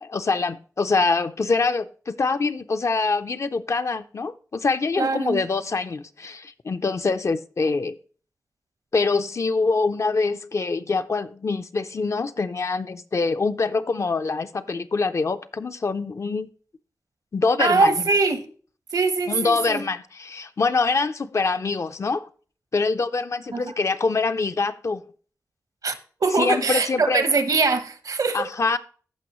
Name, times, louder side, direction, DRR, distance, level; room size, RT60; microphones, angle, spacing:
voice 1, 0.0-8.0 8.9-16.5 17.3-17.9 19.3-22.3 22.7-25.0 26.4-27.2 28.3-28.8, left 4 dB, 50° left, 0.5 m, -24 dB
voice 2, 5.0-5.4 17.6-18.5 18.9-19.8 23.5-23.7 25.8-28.5, right 4 dB, 70° right, 0.9 m, -22 dB
14.5 x 5.4 x 3.0 m
wide cardioid pair, 85°, 6 cm